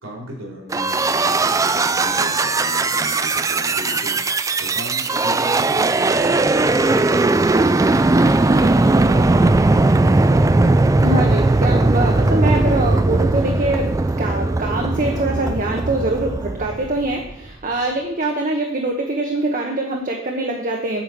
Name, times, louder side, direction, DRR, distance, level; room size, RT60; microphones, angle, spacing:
voice 1, 0.0-4.2 4.6-9.4, equal, 80° right, -3 dB, 3.8 m, -35 dB
sound 1, 0.7-17.3, right 2 dB, 15° right, 0.3 m, -18 dB
voice 2, 11.0-21.0, right 2 dB, 40° right, 1 dB, 1.0 m, -23 dB
8.8 x 4.9 x 7.6 m, 0.79 s
head